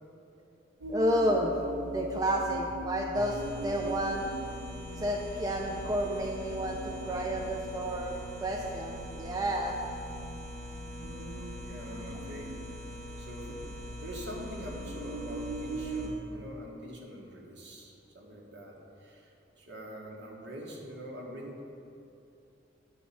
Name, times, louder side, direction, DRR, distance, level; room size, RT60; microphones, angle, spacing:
sound 1, 0.8-16.2, equal, 80° right, 0.7 m, -41 dB
voice 1, 0.9-1.5 1.8-4.3 5.0-9.8, right 1 dB, 20° right, 1 dB, 0.4 m, -31 dB
sound 2, 3.1-16.1, equal, 40° right, 1.6 m, -45 dB
voice 2, 11.0-12.5 12.9-21.8, equal, 65° right, -2 dB, 1.4 m, -44 dB
9.5 x 4.2 x 5.6 m, 2.7 s
head